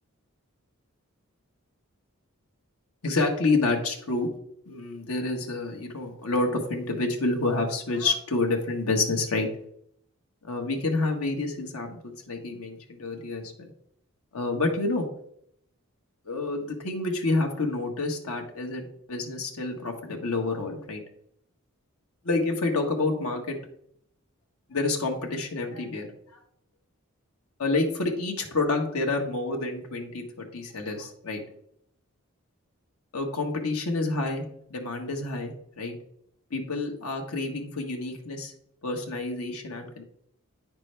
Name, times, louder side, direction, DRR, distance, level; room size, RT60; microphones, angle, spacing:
voice 1, 3.0-4.3 4.7-9.5 10.4-13.7 14.3-15.1 16.2-21.0 22.2-23.6 24.7-26.4 27.6-31.4 33.1-34.4 34.7-35.9 36.5-38.5 38.8-40.0, left 3 dB, 85° left, 2 dB, 1.4 m, -28 dB
9.1 x 6.0 x 3.3 m, 0.70 s
head